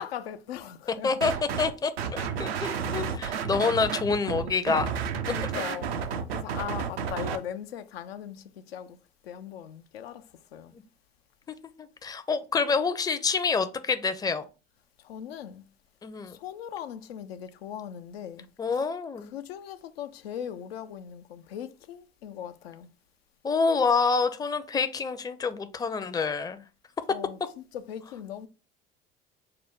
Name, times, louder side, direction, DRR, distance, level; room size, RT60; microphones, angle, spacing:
voice 1, 0.0-1.1 5.3-5.9 6.3-9.0 9.2-10.7 15.0-15.6 16.2-18.5 19.3-22.9 27.1-28.5, left 9 dB, 85° left, 0.5 m, -39 dB
sound 1, 1.2-1.7 2.0-7.4, right 7 dB, 85° right, 0.5 m, -31 dB
voice 2, 1.6-4.9 10.7-10.8 11.8-14.4 16.0-16.4 18.6-19.3 23.4-26.6, left 4 dB, 15° left, 0.5 m, -27 dB
5.5 x 2.1 x 3.6 m
hypercardioid pair, 65°, 30 cm